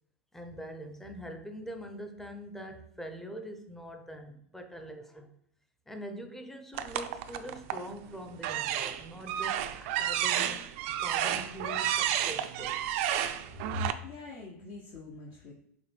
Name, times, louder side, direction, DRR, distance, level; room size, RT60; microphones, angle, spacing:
voice 1, 0.3-5.3 5.9-10.6 11.0-12.8, equal, 5° left, 5 dB, 0.6 m, -43 dB
sound 1, 6.7-7.9 8.4-13.9, right 11 dB, 60° right, 0.3 m, -31 dB
voice 2, 13.7-15.5, left 2 dB, 50° left, -2 dB, 0.7 m, -40 dB
4.8 x 2.2 x 3.3 m, 0.70 s
hypercardioid pair, 100°, 8 cm